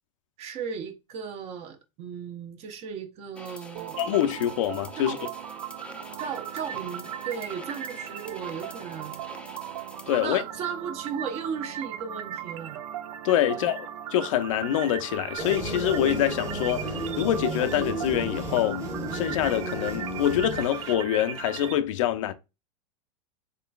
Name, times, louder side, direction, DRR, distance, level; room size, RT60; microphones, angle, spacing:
voice 1, 0.4-4.0 5.0-5.3 6.2-9.3 10.2-12.8 13.5-13.7, right 7 dB, 40° right, 0.7 m, -36 dB
sound 1, 3.3-10.2, left 3 dB, 5° left, 0.4 m, -46 dB
sound 2, 3.8-21.8, right 10 dB, 80° right, 0.4 m, -38 dB
voice 2, 4.0-5.2 10.1-10.4 13.2-18.8 19.1-22.3, left 11 dB, 75° left, 0.5 m, -25 dB
sound 3, 15.4-20.9, right 1 dB, 20° right, 1.1 m, -33 dB
3.8 x 3.2 x 2.3 m
supercardioid pair, 120°, 17 cm